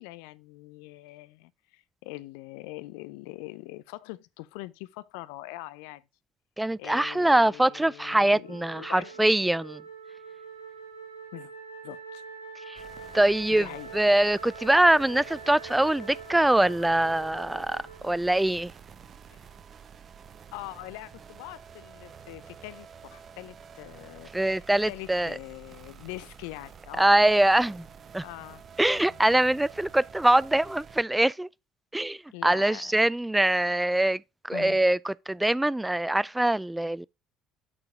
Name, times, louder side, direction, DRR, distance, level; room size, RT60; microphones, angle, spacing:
voice 1, 0.0-6.1 6.8-9.2 11.3-11.5 11.8-12.2 13.5-14.0 19.3-19.4 20.5-27.1 28.2-28.6 28.9-29.2 32.3-32.9 33.6-33.9 34.5-34.8, left 18 dB, 70° left, 0.5 m, -43 dB
voice 2, 6.6-9.8 12.7-12.8 13.1-13.7 13.9-18.7 24.3-25.4 27.0-27.9 28.1-28.2 28.8-31.5 31.9-37.1, right 1 dB, 10° right, 0.3 m, -23 dB
Wind instrument woodwind instrument, 8.4-18.8, right 4 dB, 90° right, 1.5 m, -44 dB
sound 1, 12.8-31.0, right 7 dB, 45° right, 0.9 m, -49 dB
8.6 x 4.8 x 4.7 m
hypercardioid pair, 55°, 0 cm